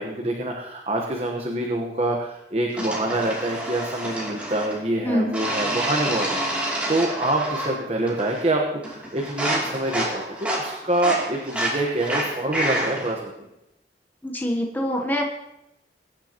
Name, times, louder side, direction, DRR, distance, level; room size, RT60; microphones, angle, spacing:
voice 1, 0.0-13.3, right 1 dB, 35° right, 0 dB, 1.1 m, -26 dB
sound 1, 2.8-4.8 5.3-7.8 8.1-8.5 8.8-13.1, right 1 dB, 10° right, 2.7 m, -28 dB
voice 2, 14.2-15.2, equal, 10° left, 2 dB, 0.9 m, -24 dB
22.0 x 10.0 x 3.0 m, 0.90 s
head